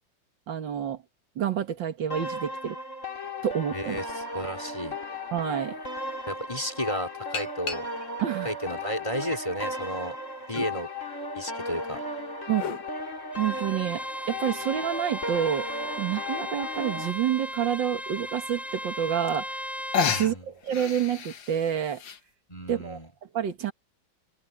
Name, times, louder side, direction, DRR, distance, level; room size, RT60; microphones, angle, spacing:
voice 1, 0.5-1.0 1.4-2.8 3.4-4.0 5.3-5.8 8.2-8.5 10.6-10.7 12.5-12.8 13.4-15.7 16.0-19.6 20.2-22.0 22.7-23.0 23.3-23.7, right 9 dB, 80° right, 2.3 m, -28 dB
sound 1, 2.1-17.1, left 1 dB, 40° left, 3.3 m, -36 dB
voice 2, 3.7-5.0 6.3-7.9 8.4-10.2 10.5-10.9 11.3-12.0 20.1-20.5 22.5-23.1, equal, 15° left, 4.3 m, -33 dB
sound 2, 5.6-5.7 7.3-8.2 8.9-9.9 10.6-10.7 11.8-12.9 14.5-14.6 15.1-15.2 15.4-15.5 15.9-16.2 17.2-17.3 17.8-17.9 19.0-19.1 19.3-19.7 19.9-22.2, left 6 dB, 85° left, 2.1 m, -32 dB
Bowed string instrument, 13.3-20.3, equal, ahead, 7.6 m, -36 dB
open air
omnidirectional pair, 2.0 m